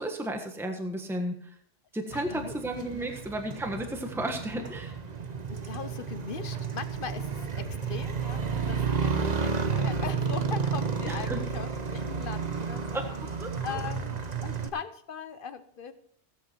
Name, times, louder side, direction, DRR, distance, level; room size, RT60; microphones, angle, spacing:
voice 1, 0.0-1.5 1.9-5.0 11.1-11.4 12.9-13.8, right 1 dB, ahead, 4 dB, 1.3 m, -34 dB
voice 2, 2.1-2.5 4.4-4.6 5.5-13.1 13.6-15.9, left 6 dB, 55° left, 11 dB, 1.0 m, -40 dB
Motorcycle, 2.1-14.7, right 5 dB, 40° right, 0.9 m, -32 dB
16.0 x 8.6 x 4.5 m, 0.62 s
omnidirectional pair, 1.1 m